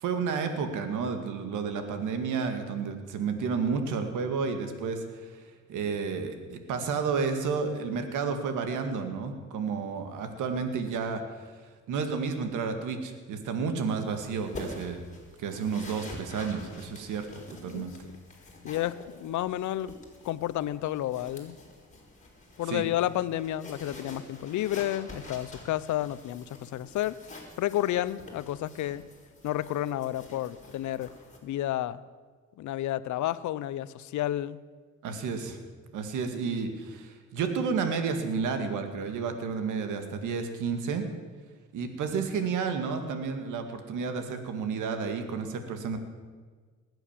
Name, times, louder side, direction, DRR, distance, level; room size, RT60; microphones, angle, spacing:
voice 1, 0.0-5.4 5.7-11.2 11.9-15.0 15.4-17.3 17.6-17.9 22.7-22.8 35.0-35.6 35.9-41.1 41.7-46.0, right 5 dB, 85° right, 7 dB, 2.1 m, -31 dB
sound 1, 13.8-31.4, left 2 dB, 25° left, 4.1 m, -47 dB
voice 2, 17.5-17.9 18.6-20.0 20.2-21.6 22.6-27.2 27.6-29.0 29.4-31.1 31.4-32.0 32.6-34.6, left 13 dB, 75° left, 17 dB, 0.7 m, -31 dB
20.0 x 9.0 x 7.4 m, 1.5 s
cardioid pair, 90°, 30 cm